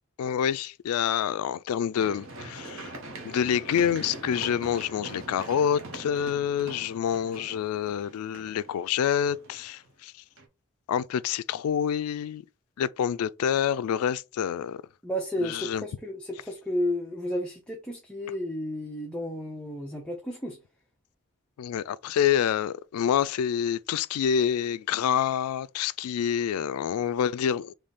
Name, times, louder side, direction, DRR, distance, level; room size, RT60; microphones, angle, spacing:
voice 1, 0.2-2.9 3.2-10.1 10.9-12.4 12.8-14.8 15.4-15.8 21.6-27.7, left 8 dB, 85° left, 0.3 m, -27 dB
Run, 2.0-9.9 10.4-10.5, right 2 dB, 65° right, 1.0 m, -42 dB
voice 2, 15.0-20.6, left 1 dB, 5° left, 0.5 m, -32 dB
3.5 x 3.1 x 4.1 m
head